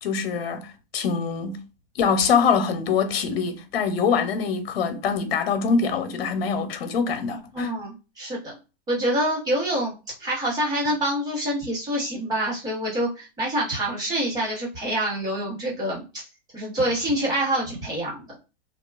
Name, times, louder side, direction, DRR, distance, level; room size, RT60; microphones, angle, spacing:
voice 1, 0.0-1.6 2.0-7.7, left 6 dB, 90° left, 0.6 m, -24 dB
voice 2, 7.5-8.6 8.9-16.2 16.5-18.2, right 1 dB, 15° right, 1.0 m, -26 dB
2.8 x 2.3 x 2.3 m
supercardioid pair, 160°, 29 cm